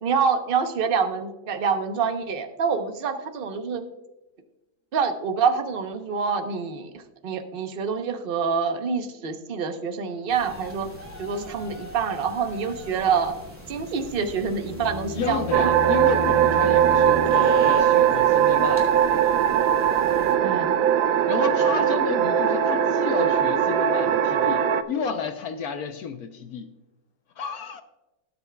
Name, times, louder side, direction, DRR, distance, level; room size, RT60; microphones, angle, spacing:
voice 1, 0.0-3.8 4.9-10.9 11.2-13.3 13.7-15.7 20.4-20.7, right 6 dB, 45° right, 0.7 m, -26 dB
sound 1, 10.3-20.3, equal, 5° right, 2.6 m, -40 dB
sound 2, 14.1-17.9, equal, 30° right, 2.8 m, -34 dB
voice 2, 15.1-19.0 21.3-26.7 27.4-27.8, left 6 dB, 65° left, 0.9 m, -31 dB
sound 3, 15.5-24.8, right 9 dB, 80° right, 1.4 m, -20 dB
18.0 x 8.2 x 2.3 m
omnidirectional pair, 2.1 m